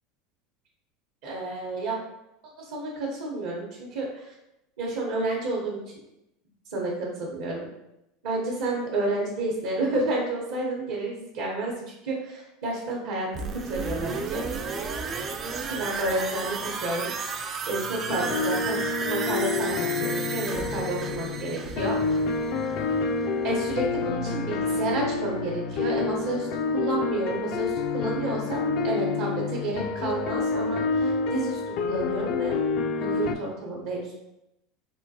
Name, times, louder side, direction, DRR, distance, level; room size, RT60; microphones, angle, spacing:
voice 1, 1.2-2.0 2.6-4.3 4.8-5.8 6.7-7.7 8.2-14.4 15.7-22.0 23.4-32.6 33.0-34.1, right 2 dB, 75° right, -4 dB, 0.8 m, -30 dB
sound 1, 13.3-23.1 23.4-23.5, right 5 dB, 35° right, 0.4 m, -33 dB
sound 2, 18.1-33.4, left 4 dB, 60° left, 0.3 m, -28 dB
3.6 x 2.2 x 2.7 m, 0.89 s
hypercardioid pair, 90°, 0 cm